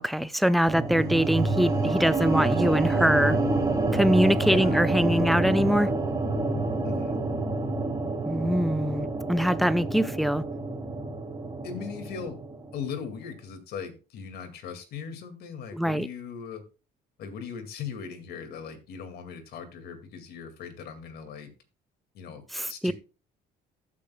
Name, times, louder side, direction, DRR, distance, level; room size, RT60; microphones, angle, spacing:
voice 1, 0.0-3.4 3.9-5.9 8.3-10.4 15.7-16.1 22.5-22.9, equal, ahead, 0.5 m, -23 dB
sound 1, 0.7-12.9, right 2 dB, 20° right, 1.8 m, -28 dB
voice 2, 4.4-4.8 6.8-7.2 11.6-12.4 12.7-16.6 17.2-21.5 22.1-22.4 22.7-22.9, left 6 dB, 70° left, 2.2 m, -39 dB
14.5 x 8.6 x 2.3 m
cardioid pair, 110°, 17 cm